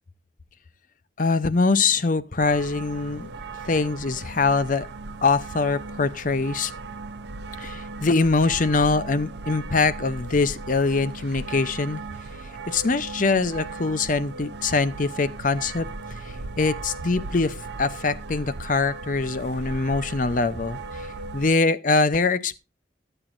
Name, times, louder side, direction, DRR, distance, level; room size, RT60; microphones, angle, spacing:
voice 1, 1.2-3.3 3.6-4.9 5.2-6.7 7.6-12.0 12.7-15.9 16.2-21.1 21.3-22.6, left 3 dB, 45° left, 0.7 m, -23 dB
sound 1, 2.4-21.5, right 3 dB, 65° right, 0.6 m, -37 dB
13.5 x 8.9 x 2.5 m
head